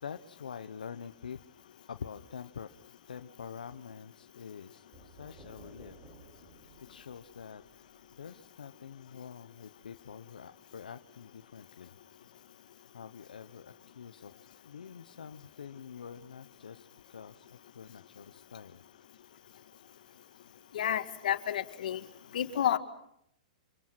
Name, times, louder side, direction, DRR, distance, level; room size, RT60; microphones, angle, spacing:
voice 1, 0.0-1.4 1.9-2.7 3.1-6.0 6.8-7.6 8.1-12.0 12.9-14.3 14.6-18.8, left 7 dB, 85° left, 7 dB, 1.0 m, -46 dB
sound 1, 4.9-8.7, right 2 dB, 35° right, 5.8 m, -56 dB
voice 2, 20.7-22.0 22.3-22.8, left 10 dB, 70° left, 9 dB, 2.0 m, -30 dB
26.5 x 24.5 x 6.0 m, 0.74 s
hypercardioid pair, 125°, 5 cm